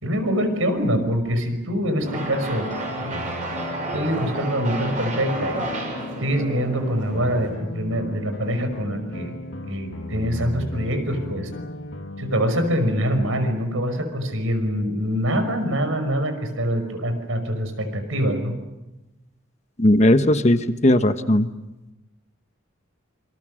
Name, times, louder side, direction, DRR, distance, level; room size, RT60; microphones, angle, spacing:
voice 1, 0.0-2.7 3.0-3.3 3.9-5.6 6.2-9.4 9.7-11.5 12.2-18.6, equal, 85° right, 7 dB, 5.5 m, -24 dB
sound 1, 2.0-13.5, left 1 dB, 70° left, 2.5 m, -35 dB
sound 2, 2.0-7.5, right 1 dB, 40° right, 7.0 m, -31 dB
voice 2, 19.8-21.5, left 1 dB, 35° left, 9 dB, 1.2 m, -17 dB
28.0 x 26.5 x 6.5 m, 1.0 s
head